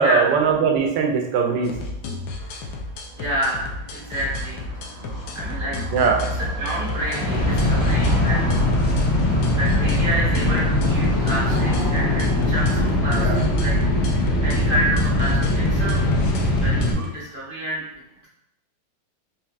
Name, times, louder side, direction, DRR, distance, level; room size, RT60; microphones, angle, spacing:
voice 1, 0.0-1.7 5.9-6.2 13.2-13.4, right 5 dB, 75° right, 2 dB, 1.2 m, -20 dB
sound 1, 1.6-17.1, left 3 dB, 70° left, 1.1 m, -33 dB
Car passing by / Traffic noise roadway noise, 1.9-16.5, equal, 45° left, 0.7 m, -33 dB
voice 2, 3.2-4.6 5.3-5.8 6.3-8.5 9.5-13.8 14.0-16.0 16.5-17.8, right 1 dB, 40° right, -6 dB, 0.8 m, -28 dB
sound 2, 7.1-16.9, left 1 dB, 85° left, 1.4 m, -21 dB
4.8 x 2.8 x 2.3 m, 0.85 s
omnidirectional pair, 2.1 m